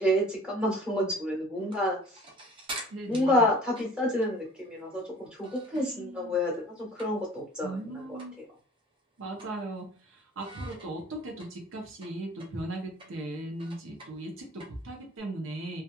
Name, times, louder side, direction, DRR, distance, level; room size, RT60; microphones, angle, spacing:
voice 1, 0.0-2.0 3.1-8.4, left 1 dB, 5° right, -5 dB, 1.2 m, -29 dB
sound 1, 1.5-6.0 6.3-7.5 7.8-7.9 8.2-8.4 8.8-10.0 10.4-15.2, right 1 dB, 25° right, 0.6 m, -46 dB
voice 2, 2.9-3.5 5.7-6.3 7.6-8.3 9.2-15.8, right 2 dB, 75° right, 1 dB, 0.6 m, -38 dB
2.8 x 2.3 x 2.2 m, 0.39 s
head